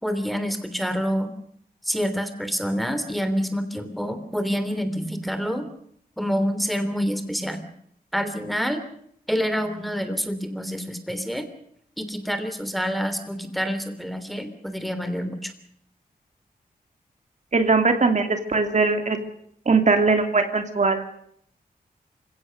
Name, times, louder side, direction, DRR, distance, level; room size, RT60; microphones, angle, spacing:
voice 1, 0.0-1.3 1.8-5.7 6.2-7.7 8.1-8.8 9.3-11.4 12.0-15.5, equal, ahead, 8 dB, 3.3 m, -27 dB
voice 2, 17.5-19.3 19.7-21.0, right 4 dB, 50° right, 6 dB, 2.6 m, -20 dB
28.0 x 17.0 x 6.7 m, 0.68 s
wide cardioid pair, 90°, 16 cm